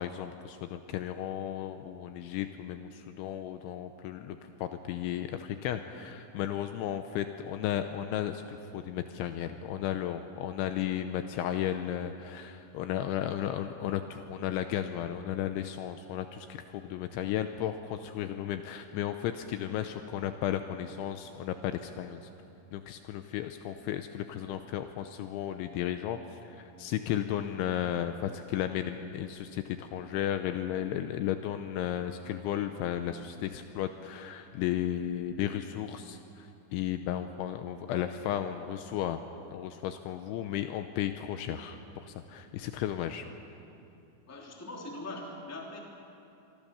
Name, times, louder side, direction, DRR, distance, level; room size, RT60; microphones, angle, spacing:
voice 1, 0.0-22.2 22.7-39.2 39.5-43.2, left 11 dB, 80° left, 8 dB, 2.9 m, -34 dB
voice 2, 44.3-45.8, left 2 dB, 5° left, -1 dB, 1.7 m, -41 dB
26.0 x 23.5 x 7.0 m, 2.7 s
omnidirectional pair, 5.9 m